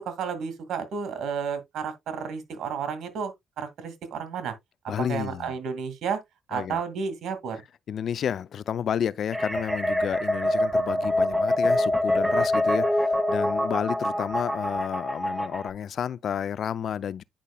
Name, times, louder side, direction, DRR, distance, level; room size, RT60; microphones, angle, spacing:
voice 1, 0.0-4.5 5.0-6.2 6.5-7.6, right 6 dB, 70° right, 2.2 m, -32 dB
voice 2, 4.9-5.5 6.5-6.8 7.9-17.2, left 8 dB, 60° left, 0.4 m, -31 dB
sound 1, 9.3-15.7, left 1 dB, 5° right, 0.9 m, -25 dB
10.0 x 5.2 x 2.3 m
cardioid pair, 90°, 0 cm